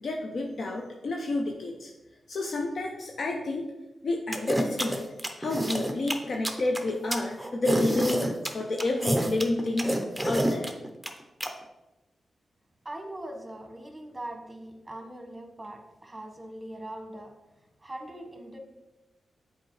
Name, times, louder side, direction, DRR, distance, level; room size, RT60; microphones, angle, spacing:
voice 1, 0.0-1.9 2.3-3.7 4.0-5.1 5.4-10.0 10.3-10.7, left 2 dB, 65° left, 1 dB, 0.6 m, -30 dB
sound 1, 4.3-11.5, right 1 dB, 5° right, 0.8 m, -28 dB
voice 2, 12.8-17.3 17.8-18.6, right 1 dB, 20° right, 3 dB, 1.2 m, -41 dB
7.3 x 4.6 x 3.2 m, 1.0 s
cardioid pair, 70°, 0 cm